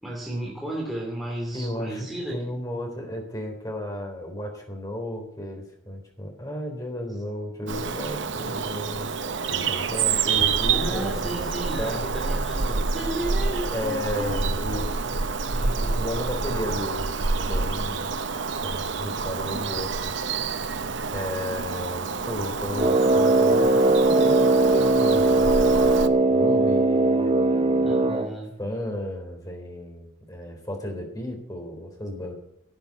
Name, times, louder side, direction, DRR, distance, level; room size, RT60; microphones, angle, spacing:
voice 1, 0.0-2.6 10.7-15.2 15.5-16.0 27.8-28.5, right 1 dB, ahead, -4 dB, 2.8 m, -34 dB
voice 2, 1.5-9.1 9.5-11.2 11.8-12.0 13.7-14.8 15.7-18.1 18.6-20.1 21.1-27.9 28.6-32.3, left 1 dB, 20° left, 2 dB, 3.8 m, -34 dB
Bird vocalization bird call bird song, 7.7-26.1, right 4 dB, 70° right, 0.8 m, -28 dB
Brass instrument, 22.7-28.4, right 2 dB, 30° right, 0.6 m, -20 dB
12.5 x 8.7 x 9.5 m, 0.74 s
head